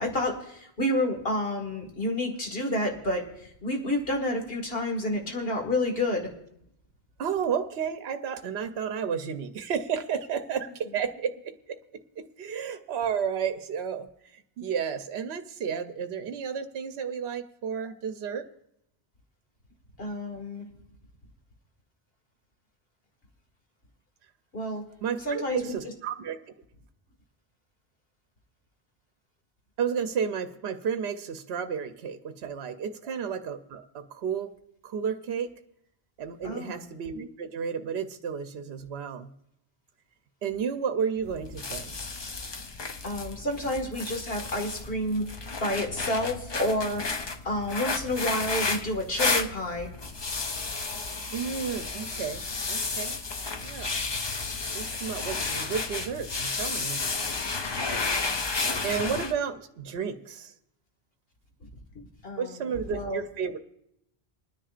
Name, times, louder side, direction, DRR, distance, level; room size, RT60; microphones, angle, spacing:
voice 1, 0.0-6.3 20.0-20.6 24.5-24.8 25.2-25.8 36.4-36.9 43.0-49.9 62.0-63.2, left 1 dB, 60° left, 2 dB, 2.0 m, -30 dB
voice 2, 7.2-18.5 25.0-26.4 29.8-34.5 34.8-35.5 36.2-39.3 40.4-41.9 51.3-53.2 53.6-53.9 54.7-57.0 58.8-60.5 62.4-63.6, right 7 dB, 75° right, 8 dB, 0.9 m, -32 dB
sound 1, 41.2-59.3, left 4 dB, 35° left, 0.5 m, -32 dB
27.5 x 10.0 x 2.5 m, 0.78 s
omnidirectional pair, 1.1 m